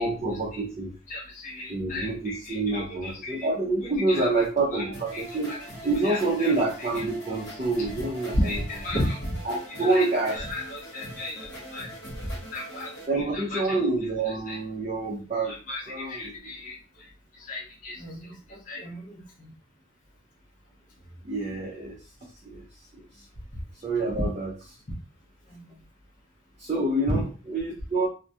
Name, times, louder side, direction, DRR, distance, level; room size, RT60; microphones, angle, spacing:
voice 1, 0.0-0.9 1.7-5.5 5.8-8.6 9.4-10.4 13.1-15.6 15.9-16.4 21.2-22.0 22.4-22.7 23.8-24.5 26.6-28.1, right 2 dB, 30° right, -3 dB, 0.4 m, -27 dB
voice 2, 1.1-3.5 4.1-4.3 4.7-5.6 6.0-6.5 6.8-7.0 8.3-9.4 9.7-11.9 12.5-13.8 14.3-14.6 15.4-19.5 21.5-21.6 25.5-25.7 27.1-27.2, left 1 dB, 40° left, -3 dB, 0.6 m, -34 dB
sound 1, 4.9-13.1, right 1 dB, 60° left, 1.0 m, -42 dB
2.3 x 2.1 x 2.6 m, 0.35 s
head